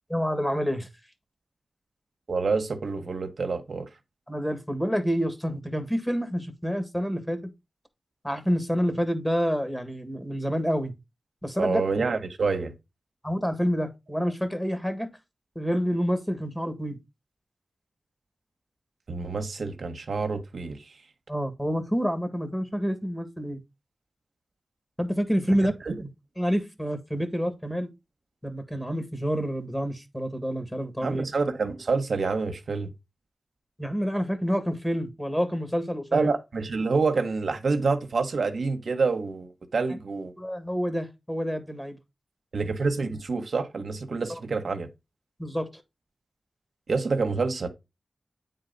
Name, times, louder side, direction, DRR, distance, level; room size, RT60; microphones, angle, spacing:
voice 1, 0.1-0.9 4.3-7.4 8.2-10.9 11.4-11.8 13.2-15.1 15.5-17.0 21.3-23.6 25.0-25.7 26.0-26.1 26.4-27.9 28.4-31.3 33.8-36.3 40.4-42.0 44.3-44.4 45.4-45.8, equal, 10° left, 1.7 m, -28 dB
voice 2, 2.3-3.9 11.6-12.7 19.1-20.9 25.5-25.6 25.9-26.0 31.0-32.9 36.1-40.3 42.5-44.9 46.9-47.7, right 4 dB, 75° right, 1.1 m, -27 dB
8.9 x 3.9 x 4.0 m
wide cardioid pair, 70°, 0 cm